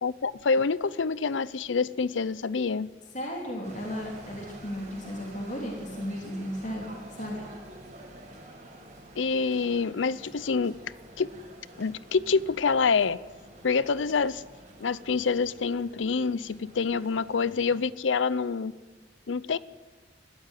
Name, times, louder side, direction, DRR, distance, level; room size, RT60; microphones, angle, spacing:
voice 1, 0.0-2.9 9.2-10.7 11.2-11.3 11.8-13.2 13.6-14.4 14.8-18.7 19.3-19.6, left 5 dB, 90° left, 19 dB, 0.6 m, -26 dB
voice 2, 3.1-6.9 7.1-7.5, equal, 40° left, 0 dB, 3.5 m, -35 dB
sound 1, 3.6-17.8, right 1 dB, 40° right, 4.8 m, -48 dB
20.5 x 15.0 x 9.2 m, 1.3 s
head